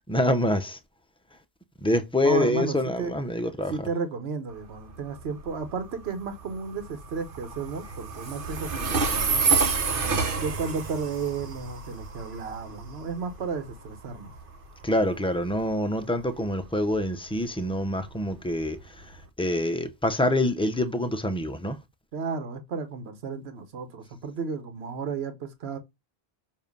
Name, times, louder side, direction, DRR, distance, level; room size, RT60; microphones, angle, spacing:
voice 1, 0.1-0.8 1.8-3.9 14.8-19.1 19.4-21.8, left 1 dB, 5° left, 0.5 m, -26 dB
voice 2, 2.2-3.1 3.7-9.7 10.4-14.3 22.1-25.8, right 5 dB, 85° right, 1.2 m, -33 dB
Train, 4.5-19.2, right 5 dB, 60° right, 1.1 m, -30 dB
7.1 x 2.7 x 5.2 m
omnidirectional pair, 1.0 m